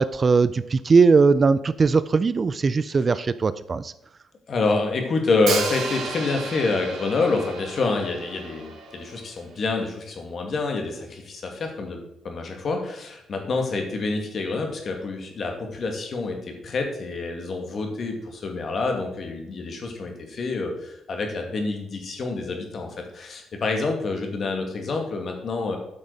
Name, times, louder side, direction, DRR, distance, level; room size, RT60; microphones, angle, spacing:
voice 1, 0.0-3.9, right 4 dB, 35° right, 15 dB, 0.4 m, -19 dB
voice 2, 4.5-12.0 12.2-25.8, left 3 dB, 50° left, 3 dB, 2.0 m, -27 dB
Hi-hat, 5.5-9.4, right 4 dB, 70° right, 1.6 m, -33 dB
8.8 x 6.2 x 4.0 m, 0.81 s
cardioid pair, 90°, 0 cm